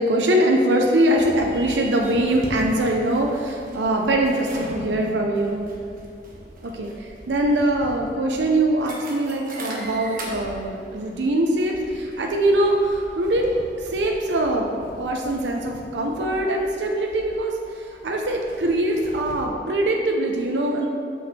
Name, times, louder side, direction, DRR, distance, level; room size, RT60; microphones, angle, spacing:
voice 1, 0.0-5.7 6.6-14.7 15.0-20.9, right 1 dB, 75° right, 1 dB, 0.6 m, -22 dB
sound 1, 1.0-19.3, right 1 dB, 50° right, 1.1 m, -41 dB
6.1 x 5.8 x 4.1 m, 2.5 s
head